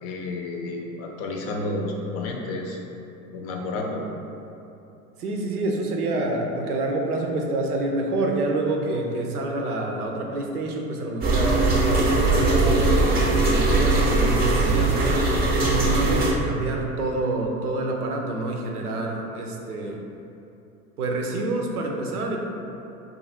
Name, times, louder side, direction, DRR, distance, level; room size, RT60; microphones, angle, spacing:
voice 1, 0.0-2.8 3.3-4.0, left 2 dB, 35° left, 1 dB, 0.5 m, -31 dB
voice 2, 5.2-15.5 15.8-20.0 21.0-22.4, right 2 dB, 85° right, 1 dB, 0.6 m, -28 dB
sound 1, 11.2-16.3, right 2 dB, 20° right, 0.6 m, -20 dB
2.7 x 2.5 x 4.1 m, 2.8 s
hypercardioid pair, 85°, 44 cm